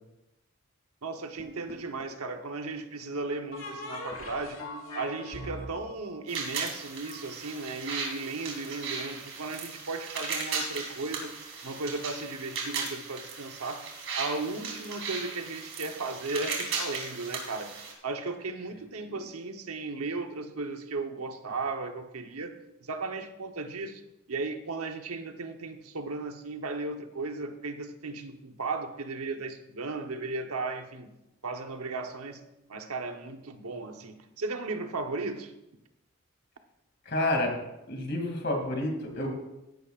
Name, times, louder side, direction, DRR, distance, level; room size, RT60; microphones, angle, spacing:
voice 1, 1.0-4.6 4.9-11.3 11.6-13.9 14.1-17.8 18.0-24.0 24.3-31.1 31.4-32.4 32.7-35.5, right 3 dB, 85° right, 1.0 m, -36 dB
sound 1, 1.4-2.2 3.5-7.2, left 1 dB, 65° left, 2.1 m, -41 dB
sound 2, 6.3-17.9, right 4 dB, 55° right, 2.9 m, -37 dB
voice 2, 37.1-37.5 37.9-39.3, left 1 dB, 50° left, 2.5 m, -29 dB
15.5 x 11.0 x 2.5 m
head